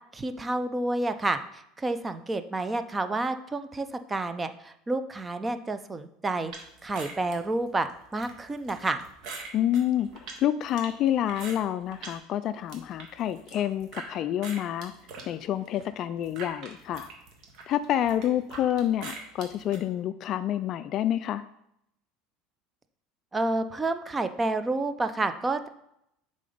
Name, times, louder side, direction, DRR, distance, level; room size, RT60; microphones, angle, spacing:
voice 1, 0.1-6.5 6.8-7.9 8.1-9.0 23.3-25.7, right 2 dB, 15° right, 10 dB, 0.5 m, -29 dB
sound 1, 6.5-12.2 12.5-14.1 14.4-19.8, right 4 dB, 50° right, 1.7 m, -44 dB
voice 2, 9.5-14.9 15.3-17.1 17.7-21.4, left 11 dB, 45° left, 13 dB, 0.3 m, -28 dB
7.6 x 3.9 x 5.1 m, 0.77 s
supercardioid pair, 135°, 0 cm